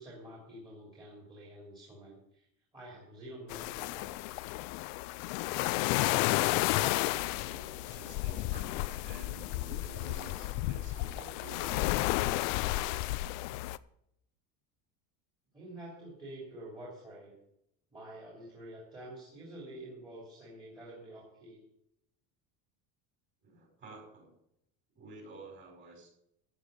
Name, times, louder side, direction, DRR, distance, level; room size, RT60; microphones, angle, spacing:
voice 1, 0.0-2.5 2.7-4.4 15.5-17.3 17.9-21.6, right 1 dB, 10° right, -6 dB, 3.1 m, -48 dB
sound 1, 3.5-13.8, left 18 dB, 65° left, 0.6 m, -32 dB
voice 2, 6.7-12.4 23.4-24.3 24.9-26.1, right 2 dB, 30° right, 0 dB, 5.8 m, -50 dB
14.5 x 8.8 x 5.3 m, 0.77 s
cardioid pair, 180°, 41 cm